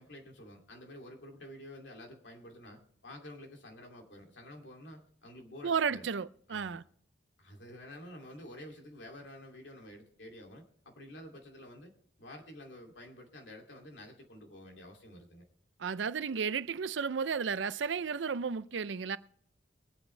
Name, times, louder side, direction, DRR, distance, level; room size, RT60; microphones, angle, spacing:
voice 1, 0.0-6.1 6.5-6.8 7.4-11.9 12.2-15.5, left 1 dB, 80° left, 2.6 m, -50 dB
voice 2, 5.6-6.8 15.8-19.2, right 6 dB, 80° right, 0.5 m, -33 dB
22.0 x 8.7 x 3.3 m
head